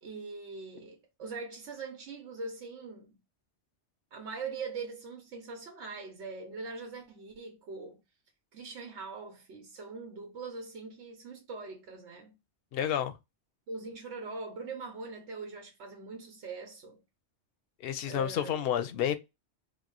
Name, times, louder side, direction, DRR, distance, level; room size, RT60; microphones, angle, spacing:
voice 1, 0.0-3.2 4.1-8.0 8.5-12.4 13.7-17.0 18.1-18.7, right 4 dB, 85° right, 1.1 m, -42 dB
voice 2, 12.7-13.1 17.8-19.2, left 9 dB, 65° left, 0.7 m, -30 dB
3.0 x 2.0 x 3.8 m
omnidirectional pair, 1.1 m